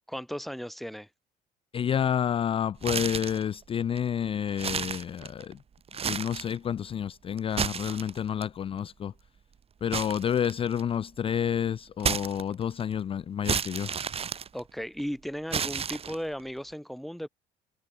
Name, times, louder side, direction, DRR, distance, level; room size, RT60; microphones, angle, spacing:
voice 1, 0.1-1.1 14.5-17.3, equal, ahead, 1.6 m, -36 dB
voice 2, 1.7-5.6 6.1-9.1 9.8-13.9, left 9 dB, 35° left, 0.4 m, -29 dB
sound 1, 2.8-3.5 4.0-4.1 4.5-5.5 5.9-6.6 7.4-8.4 9.9-10.9 12.0-12.8 13.4-15.0 15.5-16.4, right 7 dB, 35° right, 1.4 m, -32 dB
cardioid pair, 110°, 17 cm